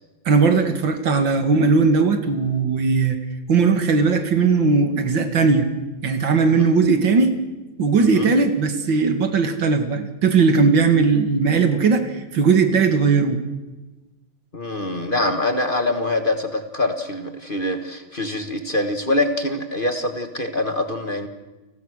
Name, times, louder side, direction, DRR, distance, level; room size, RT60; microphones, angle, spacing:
voice 1, 0.3-3.2 3.5-5.7 6.0-7.4 7.8-13.4, right 4 dB, 75° right, 8 dB, 2.6 m, -18 dB
voice 2, 8.0-8.3 14.5-21.3, left 2 dB, 30° left, 7 dB, 1.5 m, -24 dB
30.0 x 19.0 x 6.5 m, 1.1 s
omnidirectional pair, 2.1 m